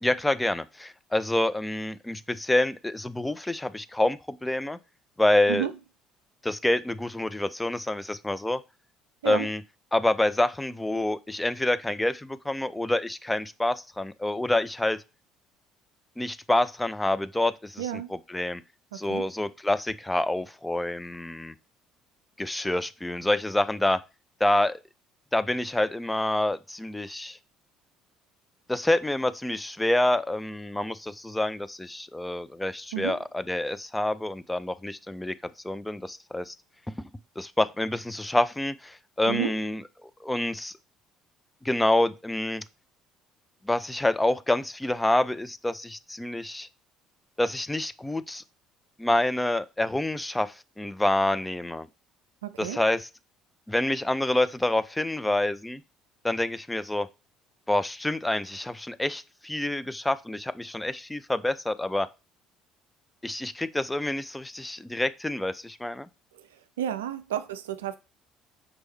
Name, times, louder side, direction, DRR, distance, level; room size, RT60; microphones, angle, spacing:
voice 1, 0.0-4.8 5.2-5.7 6.4-8.6 9.2-9.6 9.9-15.0 16.2-17.9 18.3-18.6 18.9-21.5 22.4-24.0 24.4-24.8 25.3-27.4 28.7-35.4 35.6-36.5 36.9-37.0 37.4-40.7 41.6-42.6 43.6-46.7 47.4-48.4 49.0-51.9 52.6-53.1 53.7-55.8 56.2-57.1 57.7-62.1 63.2-66.1, left 1 dB, 10° left, 0.3 m, -27 dB
voice 2, 17.8-18.1 18.9-19.3 32.9-33.2 39.3-39.5 52.4-52.8 66.3-66.5 66.8-68.0, right 11 dB, 75° right, 0.3 m, -31 dB
5.1 x 3.1 x 3.1 m
figure-of-eight pair, 55°, 0 cm